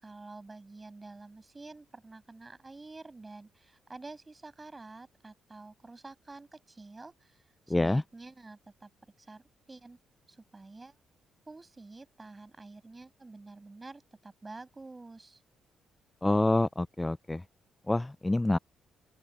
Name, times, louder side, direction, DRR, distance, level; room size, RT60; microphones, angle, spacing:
voice 1, 0.0-8.9 9.2-10.0 10.3-10.9 11.5-15.4, right 3 dB, 20° right, 6.5 m, -49 dB
voice 2, 7.7-8.0 16.2-17.4 17.9-18.6, left 2 dB, 15° left, 0.3 m, -27 dB
open air
cardioid pair, 90°, 0 cm